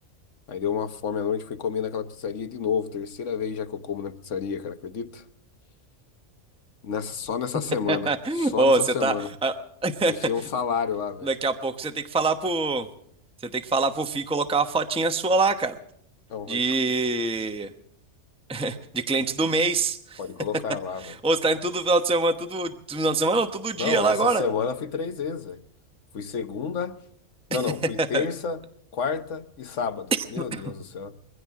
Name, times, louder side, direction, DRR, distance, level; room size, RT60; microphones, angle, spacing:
voice 1, 0.5-5.2 6.8-9.3 10.1-11.3 16.3-16.6 20.2-21.2 23.8-25.6 26.1-27.0 27.5-28.6 28.9-31.1, left 6 dB, 75° left, 1.4 m, -30 dB
voice 2, 7.9-9.1 9.4-9.5 9.8-10.1 11.2-12.9 13.5-15.8 16.5-17.7 18.5-20.2 21.0-24.4 28.1-28.2 30.1-30.2 30.5-30.6, right 3 dB, 5° right, 0.9 m, -24 dB
22.0 x 16.0 x 3.7 m
omnidirectional pair, 1.3 m